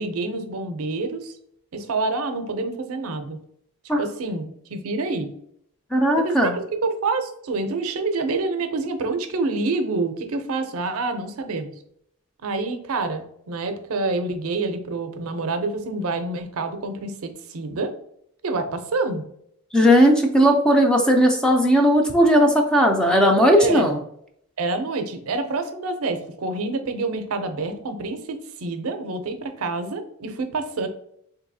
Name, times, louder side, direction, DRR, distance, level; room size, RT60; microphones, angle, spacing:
voice 1, 0.0-1.3 1.7-3.4 4.0-5.3 6.1-11.7 12.4-17.9 18.4-19.2 23.6-23.9 24.6-30.9, right 3 dB, 70° right, 8 dB, 0.5 m, -27 dB
voice 2, 5.9-6.6 19.7-24.0, equal, 5° left, 2 dB, 0.4 m, -17 dB
3.9 x 2.7 x 2.6 m, 0.70 s
head